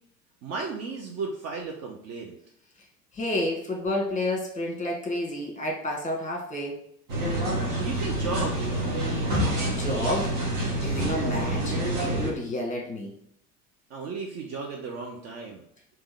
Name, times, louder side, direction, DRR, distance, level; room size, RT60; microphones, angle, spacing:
voice 1, 0.4-2.3 7.8-8.9 13.9-15.6, right 4 dB, 35° right, 1 dB, 0.6 m, -34 dB
voice 2, 3.1-6.8 9.7-10.3 10.8-13.1, left 1 dB, 15° left, 0 dB, 1.4 m, -30 dB
sound 1, 7.1-12.3, right 1 dB, 55° right, 1.5 m, -27 dB
3.5 x 3.0 x 4.7 m, 0.72 s
figure-of-eight pair, 70°, 47 cm